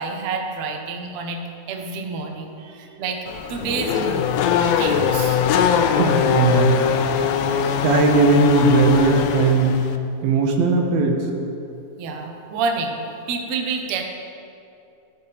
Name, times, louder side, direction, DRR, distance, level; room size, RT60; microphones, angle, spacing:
voice 1, 0.0-1.4 1.7-3.2 3.5-4.3 4.8-5.4 12.0-13.0 13.3-14.0, right 4 dB, 65° right, 3 dB, 2.0 m, -28 dB
Race car auto racing / Accelerating revving vroom, 3.3-10.0, left 8 dB, 85° left, 2.4 m, -21 dB
voice 2, 5.9-6.8 7.8-9.8 10.2-11.3, right 4 dB, 85° right, 2 dB, 3.1 m, -18 dB
16.5 x 14.0 x 3.4 m, 2.7 s
omnidirectional pair, 4.2 m